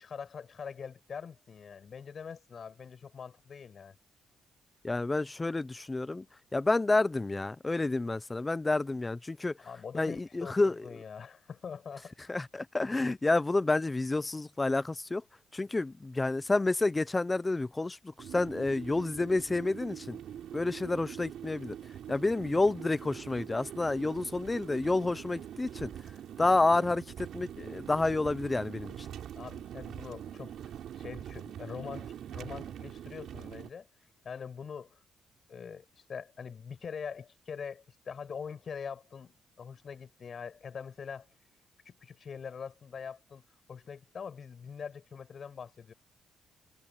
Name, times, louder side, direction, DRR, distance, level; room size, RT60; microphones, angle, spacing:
voice 1, 0.0-4.0 9.6-12.1 29.4-33.9 34.2-35.0 35.5-41.3 41.9-45.9, left 6 dB, 45° left, 7.4 m, -43 dB
voice 2, 4.8-6.2 6.5-9.5 9.9-10.8 12.3-15.2 15.5-20.2 20.5-21.7 22.1-25.9 26.4-29.1, left 2 dB, 20° left, 0.7 m, -29 dB
sound 1, 18.2-33.7, right 10 dB, 70° right, 6.5 m, -44 dB
cardioid pair, 90°, 0 cm